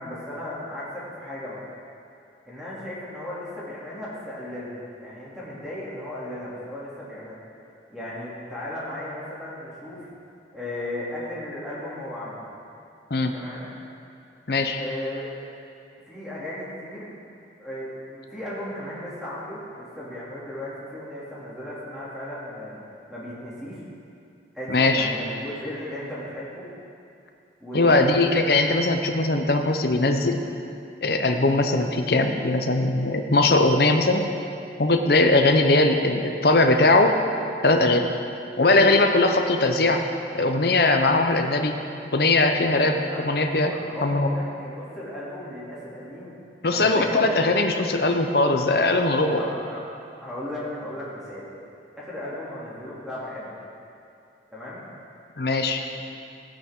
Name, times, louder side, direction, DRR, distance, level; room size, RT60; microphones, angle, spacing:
voice 1, 0.0-1.6 2.4-7.4 7.9-10.1 10.5-12.4 13.3-13.7 14.7-15.3 16.0-17.1 17.6-22.8 23.1-23.8 24.5-26.6 27.6-28.2 42.8-43.2 43.7-46.3 46.7-47.4 49.3-49.8 50.2-51.5 52.0-53.5 54.5-54.8 55.9-56.0, left 1 dB, 5° right, -9 dB, 2.7 m, -35 dB
voice 2, 14.5-14.8 24.7-25.1 27.7-30.4 31.0-34.3 34.8-37.2 37.6-38.1 38.6-40.0 40.3-41.7 42.1-43.0 43.2-43.7 44.0-44.3 46.6-49.4 55.4-55.8, left 2 dB, 55° left, 5 dB, 0.8 m, -20 dB
16.0 x 9.1 x 3.8 m, 2.6 s
head